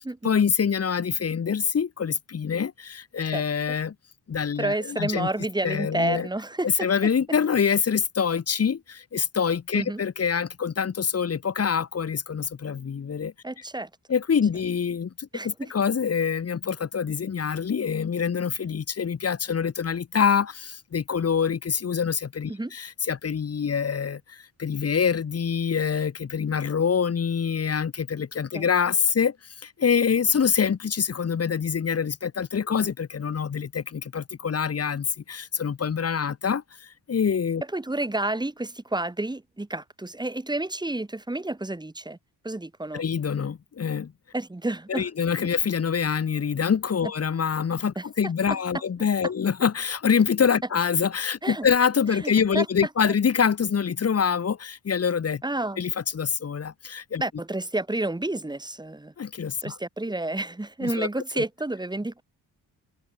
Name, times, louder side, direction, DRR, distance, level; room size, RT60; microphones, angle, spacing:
voice 1, 0.2-3.9 4.3-5.3 5.6-6.3 6.6-8.8 9.1-13.3 14.1-15.1 15.4-24.2 24.6-29.3 29.8-36.6 37.1-37.6 42.9-44.1 44.9-55.4 55.8-57.2 59.2-59.7 60.8-61.1 61.4-61.5, left 6 dB, 40° left, 2.0 m, -25 dB
voice 2, 4.6-6.9 9.7-10.0 13.4-13.9 15.3-15.7 22.5-22.7 28.5-28.7 37.7-42.2 42.4-43.0 44.3-45.1 47.9-48.0 51.4-51.7 52.1-52.6 53.0-53.1 55.4-55.8 57.2-59.1 59.6-62.2, right 2 dB, 10° right, 6.8 m, -30 dB
open air
wide cardioid pair, 180°, 39 cm